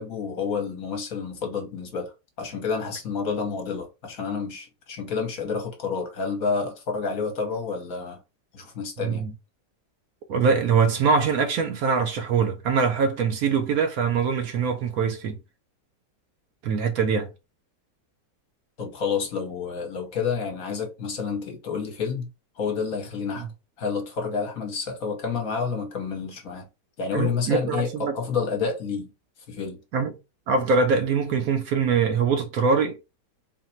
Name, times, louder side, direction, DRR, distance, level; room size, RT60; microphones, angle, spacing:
voice 1, 0.0-8.2 8.5-9.2 18.8-22.3 22.6-23.5 23.8-26.7 27.0-29.1 29.5-29.8, left 5 dB, 60° left, 1.3 m, -29 dB
voice 2, 9.0-9.3 10.3-15.4 16.6-17.3 27.1-28.1 29.9-30.1 30.5-33.0, right 5 dB, 65° right, 1.0 m, -23 dB
4.0 x 2.0 x 4.2 m
omnidirectional pair, 1.8 m